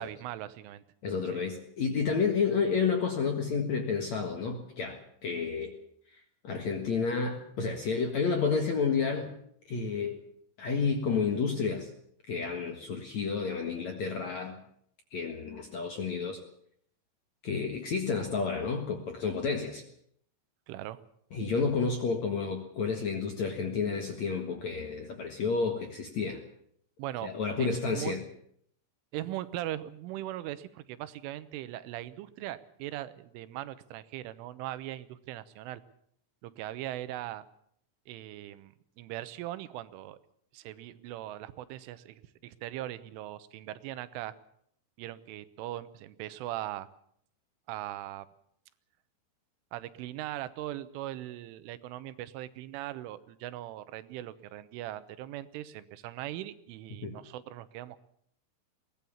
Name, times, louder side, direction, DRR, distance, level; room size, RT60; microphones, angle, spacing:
voice 1, 0.0-0.8 1.3-1.4 20.7-21.0 27.0-28.1 29.1-35.8 36.4-37.5 38.1-40.2 40.5-44.4 45.0-46.9 47.7-48.3 49.7-58.0, right 14 dB, 85° right, 14 dB, 3.5 m, -40 dB
voice 2, 1.0-5.8 6.4-9.3 9.7-10.2 10.6-11.9 12.3-14.6 15.1-16.4 17.4-19.8 21.3-26.4 27.2-28.2 57.0-57.2, left 5 dB, 55° left, 4 dB, 2.0 m, -30 dB
22.0 x 18.0 x 7.2 m, 0.68 s
omnidirectional pair, 5.5 m